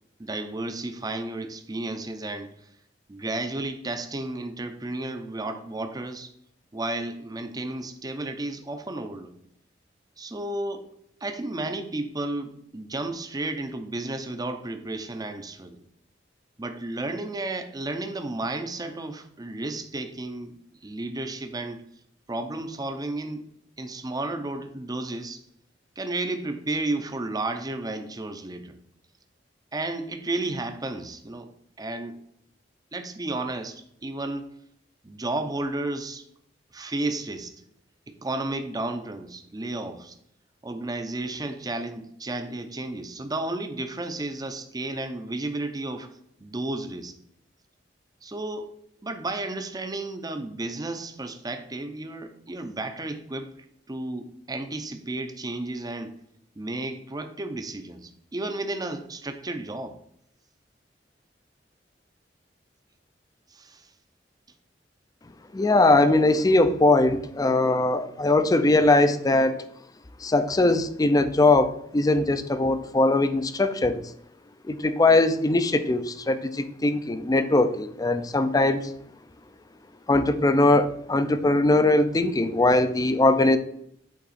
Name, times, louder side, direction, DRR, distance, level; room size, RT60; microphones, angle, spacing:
voice 1, 0.2-2.5 3.1-6.3 6.7-9.3 10.2-10.9 11.2-15.8 16.6-20.6 20.8-21.8 22.3-23.5 23.8-25.4 26.0-28.8 29.7-31.5 31.8-32.2 32.9-34.5 35.0-36.2 36.7-37.5 38.1-40.1 40.6-46.1 46.4-47.1 48.2-48.7 49.0-53.5 53.9-56.2 56.6-60.0 63.5-63.9, right 2 dB, 20° right, 8 dB, 0.6 m, -32 dB
voice 2, 65.5-69.6 70.2-74.0 74.6-78.9 80.1-83.6, left 2 dB, 20° left, 11 dB, 0.5 m, -21 dB
8.5 x 3.6 x 4.2 m, 0.71 s
head